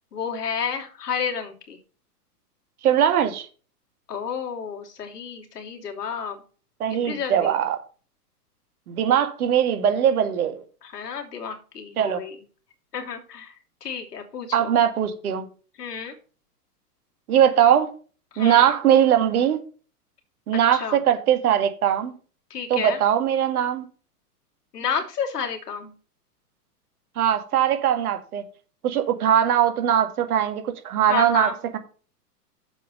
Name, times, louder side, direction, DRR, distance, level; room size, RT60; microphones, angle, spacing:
voice 1, 0.1-1.8 4.1-6.4 7.0-7.5 10.8-12.4 12.9-13.5 13.8-14.7 15.8-16.2 18.3-18.7 20.7-21.0 22.5-23.0 24.7-25.9 31.1-31.6, left 7 dB, 75° left, 3.0 m, -31 dB
voice 2, 2.8-3.5 6.8-7.8 8.9-10.6 12.0-12.2 14.5-15.4 17.3-17.9 18.4-19.6 20.5-22.1 22.7-23.8 27.2-28.4 28.8-31.8, right 9 dB, 65° right, 1.9 m, -20 dB
7.4 x 5.6 x 6.6 m
hypercardioid pair, 120°, 47 cm